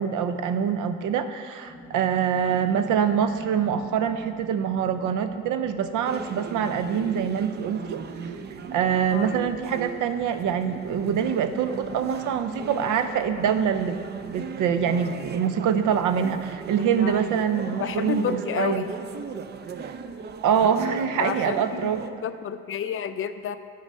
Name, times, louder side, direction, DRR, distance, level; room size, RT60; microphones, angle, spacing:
voice 1, 0.0-8.3 8.7-14.0 14.3-18.8 19.8-19.9 20.4-22.0, right 7 dB, 80° right, 9 dB, 0.6 m, -25 dB
sound 1, 1.6-15.4, equal, ahead, 1.3 m, -47 dB
voice 2, 2.3-2.9 9.1-9.3 16.9-17.2 17.8-18.9 21.2-21.9 22.2-23.6, left 8 dB, 45° left, 10 dB, 0.4 m, -31 dB
sound 2, 6.0-22.1, right 5 dB, 35° right, 0.4 m, -38 dB
9.3 x 4.0 x 5.4 m, 2.2 s
cardioid pair, 90°, 30 cm